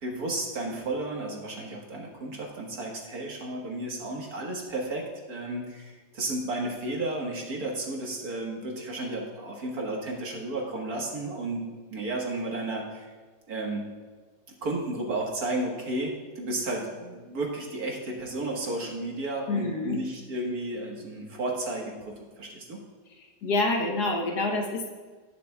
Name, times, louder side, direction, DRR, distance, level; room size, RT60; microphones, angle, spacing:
voice 1, 0.0-13.1 13.5-13.9 14.6-21.9 22.4-22.8, right 2 dB, 55° right, 0 dB, 1.9 m, -33 dB
voice 2, 19.5-20.0 23.2-24.9, left 2 dB, 60° left, 2 dB, 1.5 m, -27 dB
18.5 x 6.7 x 2.3 m, 1.4 s
omnidirectional pair, 2.1 m